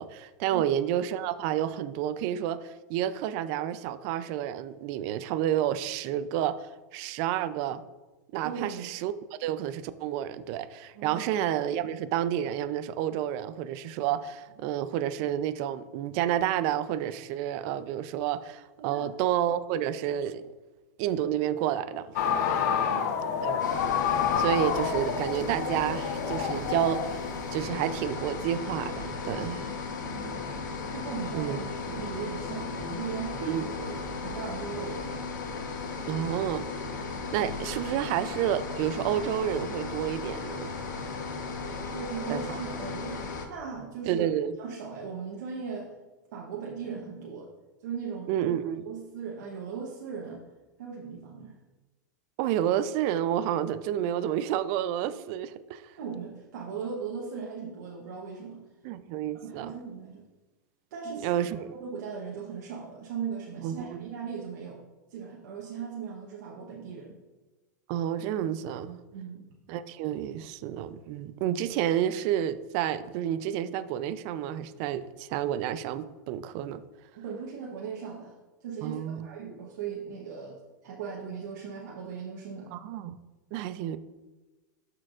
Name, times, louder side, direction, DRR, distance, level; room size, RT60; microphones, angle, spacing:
voice 1, 0.0-7.8 8.3-20.4 21.0-22.1 23.4-23.6 24.4-29.8 31.3-31.6 33.4-33.7 36.1-36.7 37.3-40.7 42.3-42.6 44.1-44.5 48.3-48.8 52.4-56.0 58.8-59.7 61.2-61.7 63.6-64.1 67.9-69.0 69.7-76.8 78.8-79.3 82.7-83.1 83.5-84.0, right 11 dB, 50° right, 0.5 m, -30 dB
voice 2, 8.4-8.9 10.9-11.2 18.8-19.0 22.7-23.2 30.0-30.5 30.9-33.5 33.8-35.4 41.9-44.3 44.6-45.9 46.3-47.5 47.8-48.5 48.8-50.4 50.8-51.6 53.9-54.0 56.0-58.7 59.4-60.3 60.9-61.3 61.7-64.8 65.1-67.2 69.1-69.5 77.1-78.3 78.6-82.7, right 6 dB, 75° right, 1.0 m, -38 dB
sound 1, 22.2-27.7, left 7 dB, 65° left, 0.7 m, -28 dB
sound 2, 23.6-43.5, left 4 dB, 80° left, 1.0 m, -36 dB
13.0 x 4.5 x 2.5 m
hypercardioid pair, 115°, 10 cm